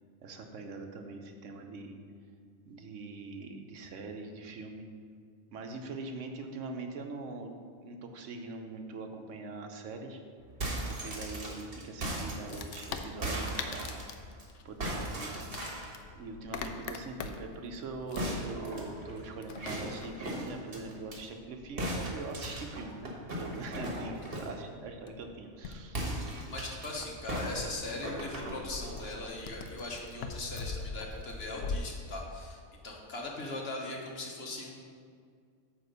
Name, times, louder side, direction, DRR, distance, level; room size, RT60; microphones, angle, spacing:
voice 1, 0.2-2.0 2.7-4.8 5.5-7.5 7.8-10.2 10.9-14.0 14.6-15.5 16.2-26.2, right 3 dB, 90° right, 4 dB, 1.2 m, -42 dB
sound 1, 10.4-14.4 14.8-16.0 18.1-21.2 21.8-24.6 25.9-26.9 27.3-29.1, right 1 dB, 50° right, 1.6 m, -37 dB
Wood, 12.5-31.8, left 4 dB, 80° left, 0.9 m, -44 dB
voice 2, 26.2-34.7, left 2 dB, 60° left, -1 dB, 1.4 m, -40 dB
9.1 x 3.5 x 6.7 m, 2.1 s
omnidirectional pair, 1.2 m